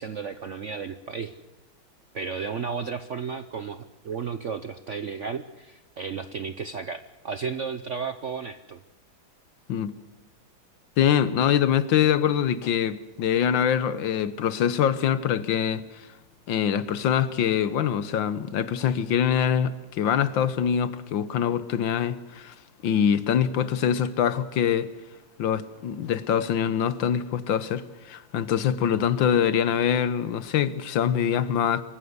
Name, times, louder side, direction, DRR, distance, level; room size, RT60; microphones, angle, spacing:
voice 1, 0.0-1.3 2.1-8.8 28.9-29.0, right 6 dB, 60° right, 0.8 m, -33 dB
voice 2, 11.0-16.1 16.5-22.5 22.8-24.9 25.4-31.8, left 9 dB, 70° left, 1.6 m, -24 dB
25.0 x 15.0 x 8.1 m
omnidirectional pair, 2.2 m